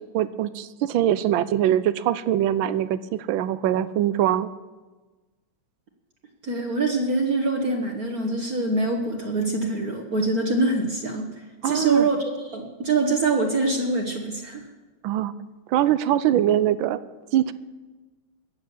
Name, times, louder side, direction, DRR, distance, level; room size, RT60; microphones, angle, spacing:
voice 1, 0.0-4.5 11.6-12.1 15.0-15.3 15.7-17.0 17.3-17.5, right 11 dB, 75° right, 15 dB, 1.4 m, -23 dB
voice 2, 6.4-11.3 11.6-14.7, right 3 dB, 50° right, 1 dB, 1.7 m, -24 dB
21.0 x 8.9 x 7.2 m, 1.3 s
omnidirectional pair, 2.3 m